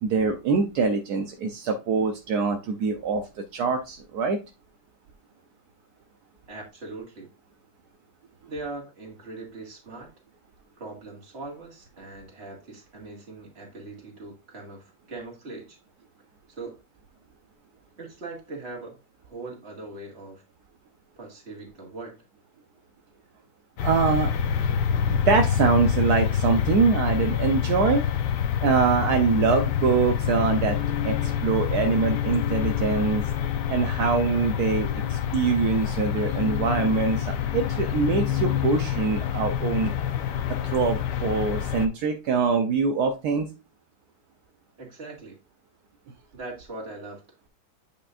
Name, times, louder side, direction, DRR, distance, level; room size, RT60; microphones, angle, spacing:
voice 1, 0.0-3.2 3.5-4.4 23.8-24.3 25.1-28.0 28.6-30.8 31.0-33.2 33.7-39.9 40.7-43.5, right 5 dB, 75° right, 4 dB, 1.3 m, -24 dB
voice 2, 6.5-7.3 8.5-10.1 10.8-15.8 16.5-16.8 18.0-20.4 21.2-22.2 44.8-45.4 46.3-47.2, right 2 dB, 40° right, 0 dB, 2.2 m, -40 dB
sound 1, 23.8-41.9, left 9 dB, 85° left, 1.3 m, -26 dB
8.5 x 5.3 x 2.5 m, 0.28 s
omnidirectional pair, 1.8 m